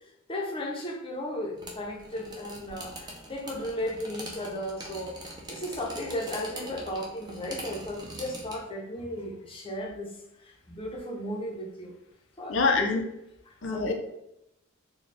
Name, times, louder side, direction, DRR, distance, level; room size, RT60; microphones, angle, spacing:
voice 1, 0.3-5.2 5.5-10.1 10.4-12.0 12.4-12.9 13.5-13.9, left 1 dB, 25° left, -1 dB, 0.7 m, -35 dB
sound 1, 1.6-8.6, right 1 dB, 20° right, 0.6 m, -43 dB
voice 2, 12.5-13.0 13.6-13.9, left 4 dB, 65° left, 4 dB, 0.6 m, -25 dB
4.2 x 2.3 x 3.2 m, 0.84 s
head